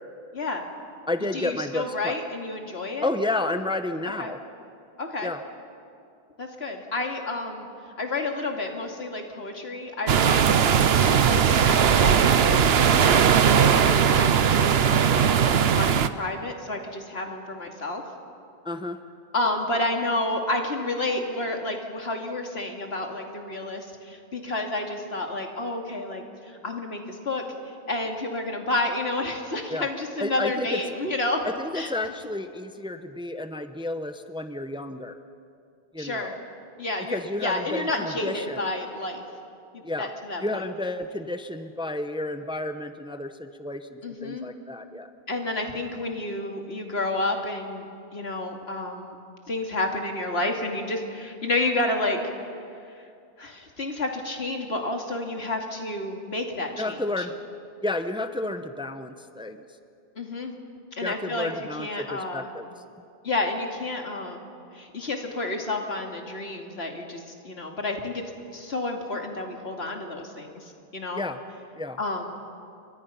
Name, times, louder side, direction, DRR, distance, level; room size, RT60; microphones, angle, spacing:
voice 1, 0.3-0.7 1.2-3.1 4.2-4.3 5.0-5.3 6.4-7.7 8.0-18.0 19.3-31.4 31.7-31.9 36.0-36.3 36.8-39.2 39.7-40.6 44.0-44.5 45.3-47.9 48.1-49.1 49.5-52.2 52.9-53.0 53.4-57.3 60.2-60.5 61.0-61.5 61.8-62.5 63.2-64.4 64.7-68.2 68.5-71.2 72.0-72.2, left 2 dB, 85° left, 2 dB, 2.7 m, -30 dB
voice 2, 1.1-2.2 3.0-4.4 5.2-5.4 18.6-19.0 29.7-29.9 30.2-30.8 31.4-35.2 35.9-36.4 37.1-38.6 39.8-40.1 40.4-45.1 56.8-57.3 57.8-59.7 61.0-62.7 71.2-71.4 71.8-72.0, left 2 dB, 5° right, 9 dB, 0.8 m, -31 dB
sound 1, 10.1-16.1, right 7 dB, 75° right, 1.0 m, -19 dB
29.5 x 24.0 x 5.8 m, 2.5 s
omnidirectional pair, 1.0 m